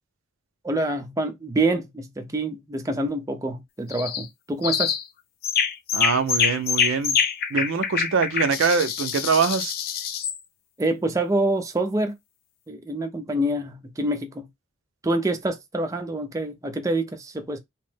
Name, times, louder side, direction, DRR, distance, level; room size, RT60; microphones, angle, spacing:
voice 1, 0.6-4.9 10.8-12.1 12.7-14.5 15.0-17.6, right 1 dB, 15° right, 0.4 m, -26 dB
sound 1, 3.9-4.3 4.6-5.0 5.4-10.4, left 7 dB, 50° left, 0.4 m, -25 dB
voice 2, 5.9-7.2 7.5-9.7, right 5 dB, 70° right, 0.5 m, -23 dB
2.9 x 2.0 x 3.2 m
head